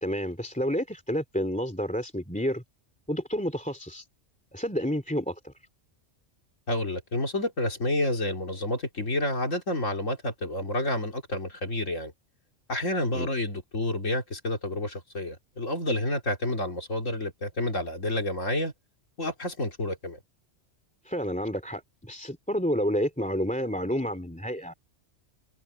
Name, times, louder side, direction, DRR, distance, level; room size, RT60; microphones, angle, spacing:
voice 1, 0.0-2.6 3.1-4.1 4.5-5.5 13.1-13.3 21.0-24.7, equal, 5° left, 2.7 m, -30 dB
voice 2, 6.7-12.1 12.7-18.7 19.2-20.2, left 1 dB, 85° left, 3.5 m, -29 dB
omnidirectional pair, 1.3 m